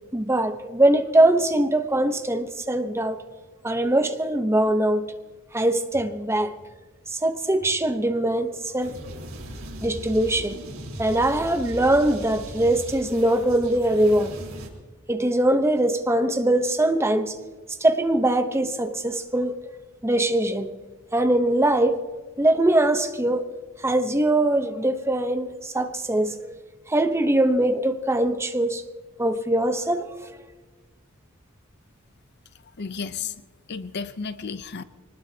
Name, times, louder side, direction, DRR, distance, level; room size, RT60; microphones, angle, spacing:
voice 1, 0.1-3.2 3.6-5.1 5.5-6.5 7.1-8.9 9.8-10.6 11.0-14.3 15.1-17.3 17.8-19.6 20.0-20.7 21.1-22.0 22.4-23.4 23.8-26.5 26.9-28.8 29.2-30.0, right 1 dB, 10° right, 0.9 m, -22 dB
sound 1, 5.9-6.0 6.6-6.7 7.6-7.7 8.2-8.3 9.3-9.4 9.9-10.0 10.9-11.0 11.6-11.7 12.6-12.7 13.2-13.3, equal, 20° left, 5.9 m, -48 dB
sound 2, 8.8-14.7, right 1 dB, 70° right, 3.9 m, -38 dB
voice 2, 32.6-33.4 33.7-34.8, left 5 dB, 50° left, 0.6 m, -33 dB
25.0 x 19.5 x 2.9 m
head